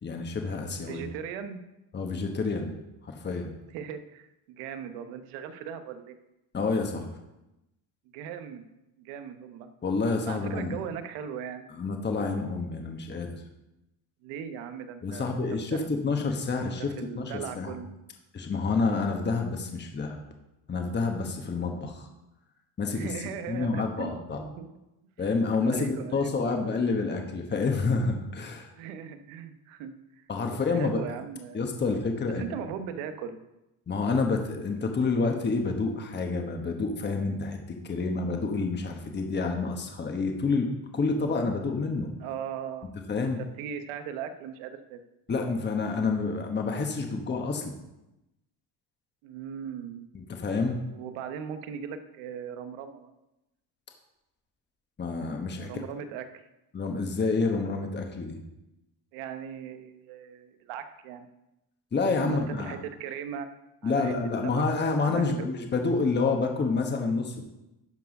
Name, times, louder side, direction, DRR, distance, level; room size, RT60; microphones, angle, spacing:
voice 1, 0.0-1.0 1.9-2.7 3.0-3.5 6.5-7.1 9.8-10.8 11.8-13.4 15.0-17.7 18.3-20.2 20.7-22.1 22.8-23.1 23.5-24.4 25.2-28.7 30.3-31.0 31.5-32.4 33.9-42.1 43.1-43.4 45.3-47.7 50.1-50.8 55.0-55.7 56.7-58.4 61.9-62.7 63.8-67.5, left 4 dB, 20° left, 3 dB, 1.2 m, -28 dB
voice 2, 0.8-1.6 3.7-6.2 8.1-8.6 9.0-9.7 10.2-11.7 14.2-15.4 15.7-15.9 16.5-17.9 22.9-24.7 25.5-26.3 28.8-31.8 32.4-33.4 42.2-42.9 43.2-45.0 49.2-50.1 50.9-53.1 55.6-56.4 59.1-61.3 62.2-63.5 63.8-64.1 64.4-64.6 65.0-65.2, right 8 dB, 85° right, 9 dB, 1.1 m, -39 dB
12.0 x 4.6 x 5.3 m, 0.94 s
cardioid pair, 115°, 48 cm